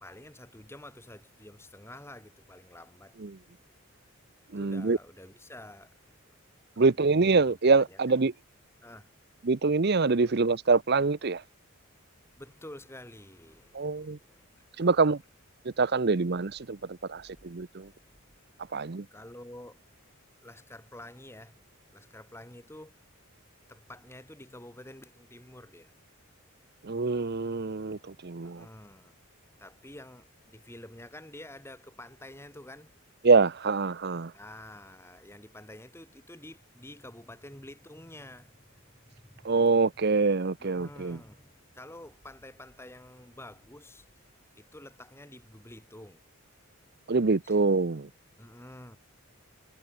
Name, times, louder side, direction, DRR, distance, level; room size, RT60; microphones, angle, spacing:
voice 1, 0.0-3.2 4.6-6.0 6.3-6.4 6.7-7.1 7.3-7.4 7.9-8.2 8.8-9.1 10.2-10.3 12.4-14.5 14.8-15.1 18.1-18.2 18.7-19.8 20.4-21.6 21.9-22.9 23.7-25.9 28.4-29.1 29.6-32.9 34.3-39.6 40.6-44.2 44.5-46.2 47.4-47.6 48.4-49.0, left 1 dB, 10° left, 3.1 m, -49 dB
voice 2, 4.5-5.0 6.8-8.3 9.4-11.4 13.7-14.2 14.8-15.2 15.8-17.9 18.7-19.1 26.8-28.6 33.2-34.3 39.4-41.2 47.1-48.1, right 4 dB, 50° right, 0.7 m, -25 dB
head